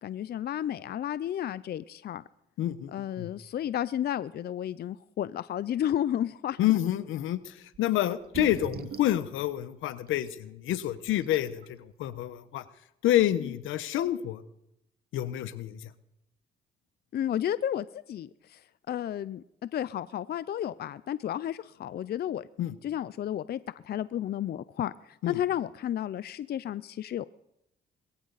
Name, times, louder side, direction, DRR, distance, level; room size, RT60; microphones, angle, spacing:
voice 1, 0.0-2.2 2.9-6.6 13.4-13.5 17.1-18.6 18.9-22.5 22.8-27.3, left 11 dB, 55° left, 16 dB, 0.5 m, -32 dB
voice 2, 2.6-3.3 6.6-12.6 13.0-14.4 15.1-15.8 22.6-22.8 25.2-25.3, left 13 dB, 85° left, 14 dB, 1.0 m, -28 dB
sound 1, 7.7-7.8 8.2-9.2 10.3-10.4 10.9-11.0 11.2-11.7, right 8 dB, 50° right, 0.9 m, -38 dB
21.5 x 15.0 x 4.1 m, 0.82 s
cardioid pair, 90°, 20 cm